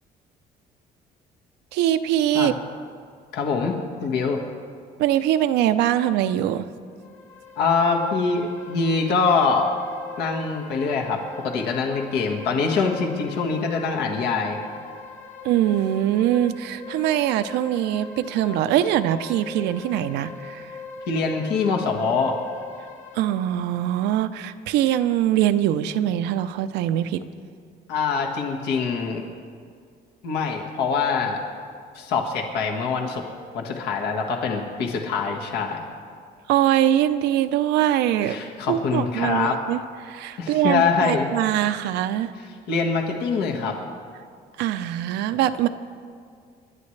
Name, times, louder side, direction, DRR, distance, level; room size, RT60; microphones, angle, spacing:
voice 1, 1.7-2.5 5.0-6.7 15.4-20.8 23.1-27.2 36.5-38.4 38.7-42.3 44.6-45.7, right 12 dB, 85° right, 10 dB, 0.6 m, -22 dB
voice 2, 3.3-4.4 7.6-9.7 10.2-14.6 21.1-22.4 27.9-29.2 30.2-31.4 31.9-33.2 33.5-35.8 38.2-39.6 40.4-41.3 42.7-43.8, left 5 dB, 75° left, 1 dB, 1.6 m, -24 dB
sound 1, 6.9-23.2, left 4 dB, 45° left, 2.3 m, -40 dB
27.5 x 11.5 x 3.3 m, 2.2 s
cardioid pair, 110°, 17 cm